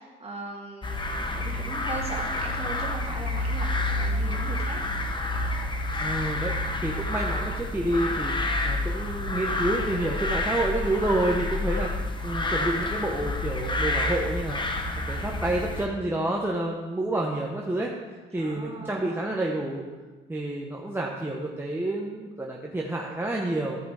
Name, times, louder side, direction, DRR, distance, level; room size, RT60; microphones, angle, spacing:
voice 1, 0.0-4.8 18.3-19.4, right 2 dB, 30° right, -2 dB, 2.2 m, -39 dB
sound 1, 0.8-15.9, left 2 dB, 25° left, 1.0 m, -29 dB
voice 2, 6.0-6.5 6.8-11.9 12.2-14.6 15.1-17.9 18.3-19.8 20.3-23.8, right 1 dB, 10° right, -2 dB, 1.0 m, -29 dB
14.0 x 5.0 x 4.7 m, 1.3 s
cardioid pair, 90°, 20 cm